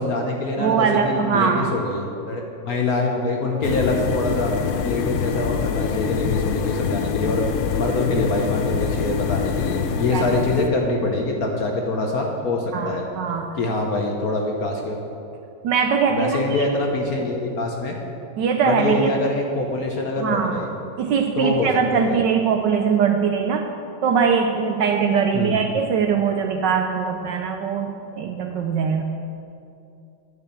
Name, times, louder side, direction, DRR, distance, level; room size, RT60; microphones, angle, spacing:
voice 1, 0.0-4.5 4.8-7.4 7.7-13.0 13.6-15.0 16.1-18.0 18.6-20.7 21.4-22.2 25.3-25.6, left 2 dB, 55° left, 1 dB, 1.2 m, -24 dB
voice 2, 0.6-1.7 10.1-10.3 12.7-13.6 15.6-16.7 18.4-19.2 20.2-20.7 21.0-23.7 24.0-29.0, right 6 dB, 75° right, 5 dB, 1.1 m, -21 dB
sound 1, 3.6-10.7, left 6 dB, 80° left, 1.5 m, -25 dB
9.7 x 5.5 x 8.3 m, 2.6 s
omnidirectional pair, 2.3 m